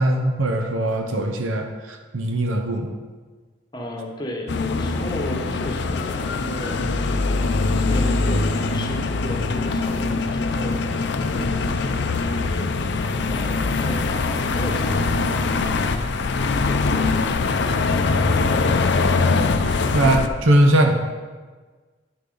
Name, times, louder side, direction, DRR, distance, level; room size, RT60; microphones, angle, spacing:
voice 1, 0.0-2.9 19.6-20.9, right 1 dB, 85° right, 4 dB, 0.8 m, -20 dB
voice 2, 3.7-7.0 7.3-10.9 11.3-12.7 13.2-15.9 16.3-18.7, equal, 20° left, 1 dB, 1.1 m, -35 dB
sound 1, 4.5-20.3, left 3 dB, 60° left, 0.5 m, -22 dB
9.4 x 6.8 x 3.9 m, 1.4 s
head